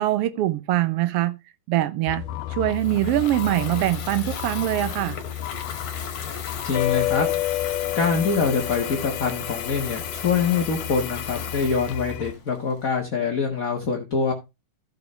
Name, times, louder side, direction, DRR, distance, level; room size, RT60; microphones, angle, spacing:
voice 1, 0.0-1.4 1.7-2.2 2.5-5.2, right 14 dB, 85° right, 1.3 m, -23 dB
sound 1, 2.1-12.3, left 14 dB, 90° left, 2.3 m, -31 dB
Water tap faucet / Fill (with liquid), 2.7-13.0, left 6 dB, 70° left, 3.5 m, -36 dB
voice 2, 6.6-7.3 7.9-14.3, left 5 dB, 40° left, 1.3 m, -24 dB
15.0 x 6.2 x 3.2 m
omnidirectional pair, 3.7 m